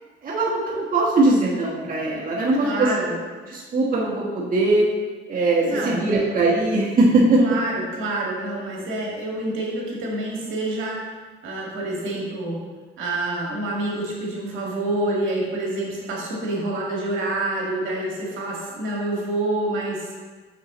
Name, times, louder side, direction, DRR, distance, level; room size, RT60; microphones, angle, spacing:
voice 1, 0.2-2.9 3.5-4.8 5.3-7.4, right 2 dB, 45° right, -5 dB, 1.2 m, -20 dB
voice 2, 2.6-3.1 5.7-6.2 7.4-11.0 11.4-12.6 13.0-20.1, right 2 dB, 80° right, -3 dB, 1.8 m, -27 dB
6.4 x 6.2 x 3.0 m, 1.4 s
cardioid pair, 90°, 20 cm